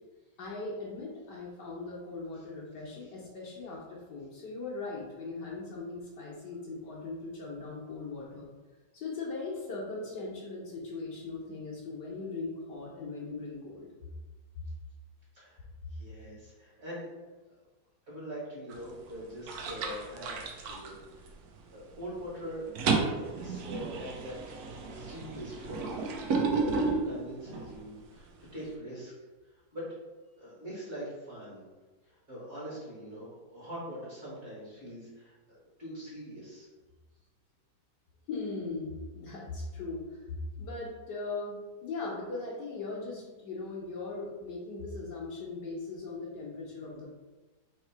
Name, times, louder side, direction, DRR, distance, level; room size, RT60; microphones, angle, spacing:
voice 1, 0.4-8.5 8.9-13.9 38.3-40.0 40.6-47.1, left 3 dB, 65° left, -5 dB, 1.4 m, -39 dB
voice 2, 15.9-17.1 18.1-21.3 21.7-22.6 23.1-26.4 26.7-29.1 29.7-29.8 30.4-31.6 32.3-36.7, equal, 35° right, -7 dB, 1.6 m, -43 dB
sound 1, 18.7-19.1 19.5-21.6 21.9-22.2 22.5-27.8, right 4 dB, 75° right, 0.8 m, -32 dB
3.7 x 3.2 x 4.5 m, 1.2 s
omnidirectional pair, 2.2 m